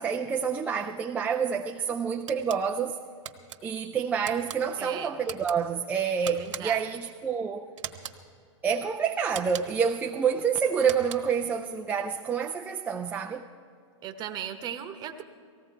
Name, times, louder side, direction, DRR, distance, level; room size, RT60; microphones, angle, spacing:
voice 1, 0.0-3.0 3.6-7.7 8.6-13.5, right 6 dB, 10° right, 0.3 m, -28 dB
sound 1, 2.3-2.6 3.2-3.6 4.2-4.6 5.2-5.6 6.2-6.9 7.8-8.2 9.3-9.9 10.8-11.4, right 9 dB, 70° right, 1.2 m, -40 dB
voice 2, 4.8-5.1 6.2-6.8 14.0-15.2, right 9 dB, 25° right, 1.0 m, -37 dB
19.0 x 16.0 x 4.5 m
hypercardioid pair, 135°, 16 cm